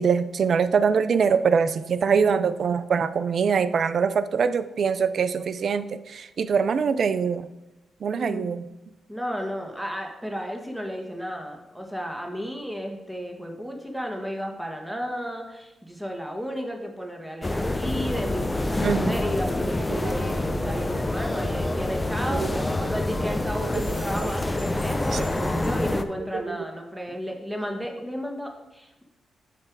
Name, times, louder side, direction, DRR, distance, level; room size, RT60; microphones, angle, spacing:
voice 1, 0.0-7.5 8.0-8.6 18.8-19.2 19.9-20.2 20.5-20.9 22.3-22.6 23.6-24.0 25.1-25.3 26.3-26.6, right 6 dB, 60° right, 13 dB, 0.4 m, -24 dB
voice 2, 8.1-8.5 9.1-29.0, equal, 5° right, 2 dB, 1.5 m, -33 dB
sound 1, 17.4-26.0, left 2 dB, 20° left, 0.6 m, -27 dB
9.7 x 3.3 x 4.6 m, 0.99 s
supercardioid pair, 60°, 0 cm